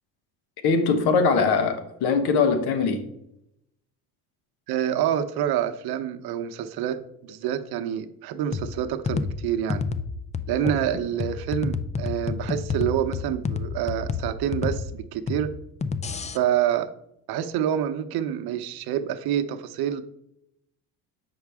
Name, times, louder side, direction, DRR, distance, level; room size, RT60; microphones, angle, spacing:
voice 1, 0.6-3.0, left 5 dB, 70° left, 9 dB, 1.2 m, -21 dB
voice 2, 4.7-9.8 10.5-15.5 16.3-16.9 17.3-20.0, right 10 dB, 65° right, 9 dB, 0.8 m, -27 dB
sound 1, 8.5-16.4, left 5 dB, 20° left, 0.3 m, -30 dB
7.2 x 5.8 x 3.5 m, 0.79 s
supercardioid pair, 95°, 40 cm